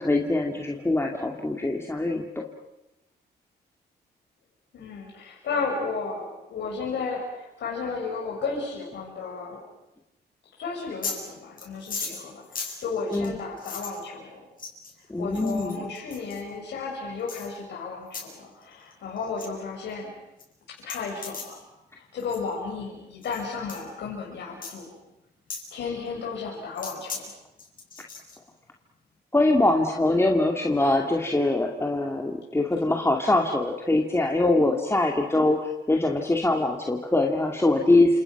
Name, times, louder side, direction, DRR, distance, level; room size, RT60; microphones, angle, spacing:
voice 1, 0.0-2.4 13.1-13.3 15.1-15.9 29.3-38.2, left 2 dB, 15° left, 1 dB, 2.3 m, -23 dB
voice 2, 4.7-9.6 10.6-14.4 15.2-20.1 20.7-21.6 21.9-24.9 25.7-27.3, left 4 dB, 75° left, -2 dB, 6.3 m, -33 dB
sound 1, 10.8-11.2 11.6-14.0 14.6-14.9 15.3-16.4 17.3-17.5 18.1-18.3 18.6-18.9 19.2-19.5 19.9-20.0 20.4-20.5 20.8-21.5 22.2-22.4 23.2-23.4 23.7-23.8 24.6-24.8 25.5-25.7 26.8-27.2 27.6-28.4, left 4 dB, 50° left, 7.6 m, -37 dB
29.5 x 27.0 x 6.0 m, 0.94 s
cardioid pair, 95°, 18 cm